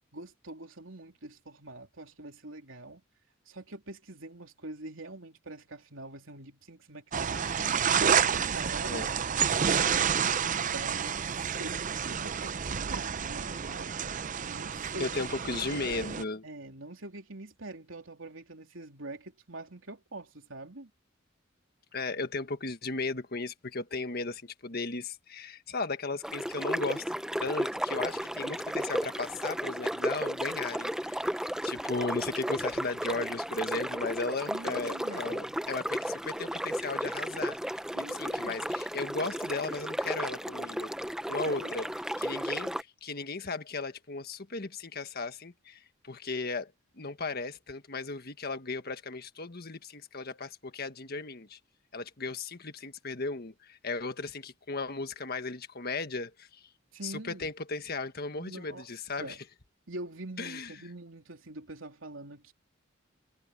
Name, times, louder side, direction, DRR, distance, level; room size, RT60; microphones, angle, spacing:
voice 1, 0.1-3.0 3.4-7.5 8.0-9.0 9.6-13.9 14.4-15.1 16.4-20.9 34.5-35.6 38.0-38.8 41.4-41.7 56.9-57.5 58.3-58.9 59.2-59.4 59.9-62.5, right 2 dB, 75° right, 3.5 m, -44 dB
sound 1, 7.1-16.2, right 7 dB, 40° right, 0.6 m, -29 dB
voice 2, 15.0-16.4 21.9-27.0 27.4-31.4 31.6-40.9 41.3-41.9 42.2-46.7 47.0-51.6 51.9-56.6 57.0-59.4 60.4-60.7, left 3 dB, 50° left, 1.6 m, -36 dB
sound 2, 26.2-42.8, equal, 5° right, 0.7 m, -34 dB
head